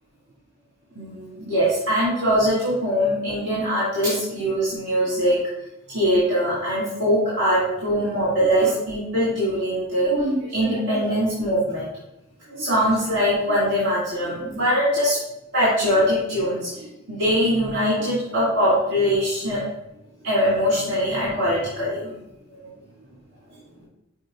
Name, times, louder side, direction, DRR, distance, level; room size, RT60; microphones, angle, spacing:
voice 1, 1.0-5.4 5.9-11.9 12.5-15.2 15.5-19.6 20.2-22.0 22.6-22.7, equal, 60° right, -8 dB, 2.4 m, -22 dB
6.3 x 4.7 x 3.8 m, 0.86 s
head